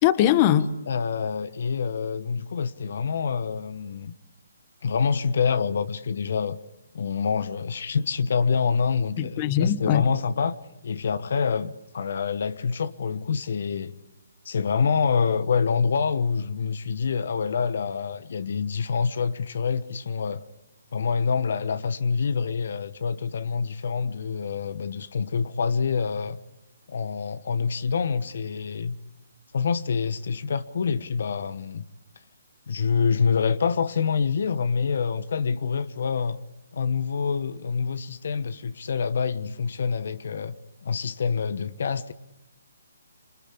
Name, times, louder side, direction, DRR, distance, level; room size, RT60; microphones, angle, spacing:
voice 1, 0.0-0.7 9.2-10.0, left 11 dB, 30° left, 1.3 m, -21 dB
voice 2, 0.9-4.1 4.8-6.6 6.9-10.6 10.8-14.0 14.4-20.4 20.9-26.4 26.9-29.0 29.5-31.8 32.7-36.4 36.7-40.6 40.8-42.1, left 5 dB, 60° left, 1.2 m, -26 dB
26.5 x 23.5 x 8.5 m
hypercardioid pair, 150°, 0 cm